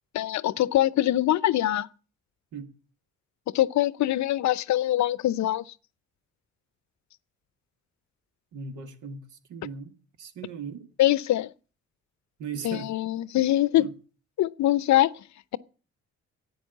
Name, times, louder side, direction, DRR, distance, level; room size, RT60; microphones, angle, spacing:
voice 1, 0.1-1.9 3.5-5.6 11.0-11.5 12.6-13.9 14.4-15.2, left 14 dB, 65° left, 0.7 m, -23 dB
voice 2, 8.5-10.8 12.4-12.9 13.8-13.9, right 6 dB, 80° right, 2.0 m, -38 dB
11.0 x 8.8 x 8.2 m
cardioid pair, 90°, 30 cm